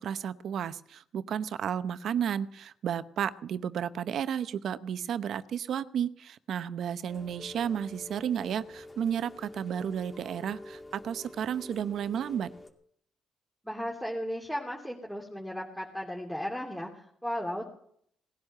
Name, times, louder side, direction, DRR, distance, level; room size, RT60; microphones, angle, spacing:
voice 1, 0.0-12.5, right 8 dB, 65° right, 13 dB, 0.8 m, -32 dB
Rain, 7.1-12.7, left 1 dB, 20° left, 2.6 m, -47 dB
voice 2, 13.6-17.6, equal, 5° left, -2 dB, 2.9 m, -35 dB
19.0 x 10.5 x 6.7 m, 0.65 s
cardioid pair, 90°, 0 cm